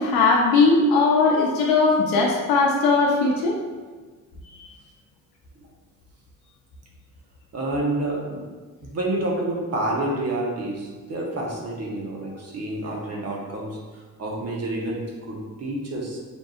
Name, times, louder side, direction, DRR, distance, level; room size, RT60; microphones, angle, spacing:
voice 1, 0.0-3.6 4.6-4.7, left 3 dB, 90° left, -3 dB, 0.6 m, -19 dB
voice 2, 7.5-8.5 8.8-16.2, right 1 dB, 45° right, -1 dB, 0.9 m, -29 dB
5.3 x 2.6 x 2.4 m, 1.4 s
cardioid pair, 100°, 35 cm